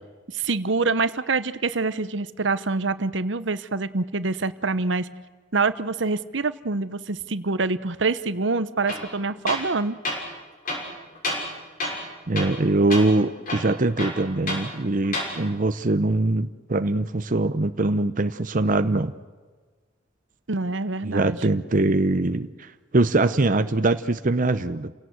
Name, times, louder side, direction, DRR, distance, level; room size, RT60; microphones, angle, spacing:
voice 1, 0.3-5.1 5.5-10.0 20.5-21.4, right 3 dB, 70° right, 14 dB, 0.9 m, -25 dB
Tools, 8.9-9.1 9.5-9.7 10.0-10.2 10.7-11.5 11.8-12.1 12.4-12.6 12.9-13.1 13.5-14.7 15.0-15.3, left 1 dB, 45° left, 6.5 m, -29 dB
voice 2, 12.3-19.1 21.0-22.7 22.9-24.9, right 2 dB, 45° right, 10 dB, 0.8 m, -22 dB
29.5 x 17.5 x 8.0 m, 1.4 s
head